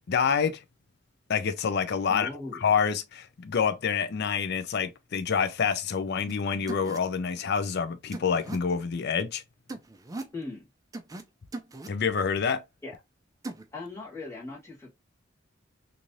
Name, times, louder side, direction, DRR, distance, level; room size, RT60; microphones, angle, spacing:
voice 1, 0.1-0.6 1.3-2.3 2.6-9.4 11.9-12.6, left 6 dB, 60° left, 0.5 m, -27 dB
voice 2, 2.1-2.6 10.3-10.7 12.8-12.9 13.7-14.9, left 3 dB, 15° left, 1.4 m, -39 dB
sound 1, 6.3-6.4 6.7-7.0 8.1-8.6 9.7-10.3 10.9-11.2 11.5-11.9 13.4-13.6, right 2 dB, 20° right, 0.4 m, -38 dB
3.1 x 2.6 x 2.6 m
head